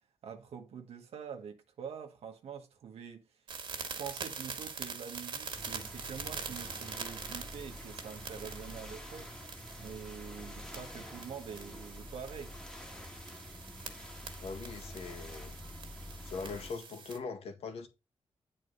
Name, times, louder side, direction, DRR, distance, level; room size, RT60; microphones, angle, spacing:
voice 1, 0.2-3.4 3.7-12.6, right 7 dB, 85° right, 1.2 m, -46 dB
sound 1, 3.5-17.2, right 5 dB, 55° right, 2.0 m, -45 dB
sound 2, 5.5-16.7, left 1 dB, 10° left, 1.6 m, -47 dB
voice 2, 14.4-15.6 16.2-17.9, left 4 dB, 85° left, 1.9 m, -41 dB
9.8 x 4.5 x 5.4 m
wide cardioid pair, 175°, 10 cm